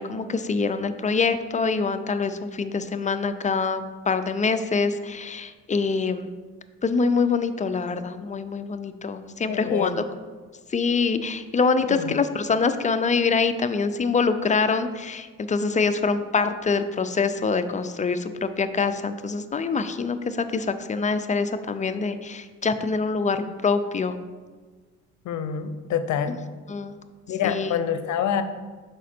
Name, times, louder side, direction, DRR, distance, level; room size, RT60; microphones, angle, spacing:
voice 1, 0.0-6.3 6.8-9.9 10.7-24.2 26.7-26.9 27.4-27.7, left 4 dB, 25° left, 10 dB, 0.4 m, -25 dB
voice 2, 9.5-10.0 11.9-12.1 25.2-26.4 27.3-28.4, left 8 dB, 70° left, 10 dB, 0.6 m, -26 dB
6.0 x 5.0 x 4.3 m, 1.4 s
cardioid pair, 90°, 30 cm